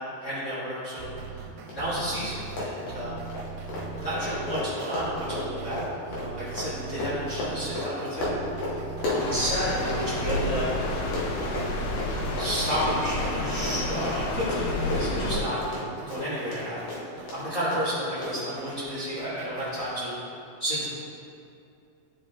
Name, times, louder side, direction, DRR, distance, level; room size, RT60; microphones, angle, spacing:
voice 1, 0.2-1.4 1.7-3.3 4.0-8.3 8.7-10.7 11.4-11.7 12.4-15.6 16.1-16.8 17.3-20.1 20.6-20.8, equal, 45° left, -10 dB, 1.4 m, -31 dB
sound 1, 1.0-19.9, right 5 dB, 80° right, 2.1 m, -41 dB
Run, 1.7-1.8 2.0-2.2 2.5-10.0 10.3-16.6 16.9-17.4 17.7-17.8 18.2-18.3, left 2 dB, 65° left, 2.5 m, -33 dB
sound 2, 9.2-15.4, left 2 dB, 80° left, 2.5 m, -30 dB
11.5 x 5.1 x 2.3 m, 2.6 s
omnidirectional pair, 4.2 m